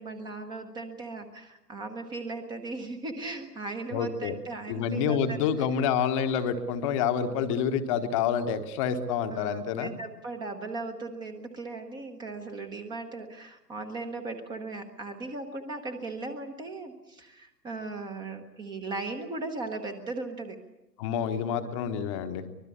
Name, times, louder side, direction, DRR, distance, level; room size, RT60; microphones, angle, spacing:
voice 1, 0.0-5.7 9.3-20.6 21.6-21.7, right 3 dB, 10° right, 6 dB, 1.0 m, -38 dB
voice 2, 3.9-4.3 4.7-9.9 21.0-22.5, left 7 dB, 20° left, 8 dB, 1.1 m, -28 dB
24.5 x 21.0 x 8.5 m, 0.96 s
figure-of-eight pair, 130°, 49 cm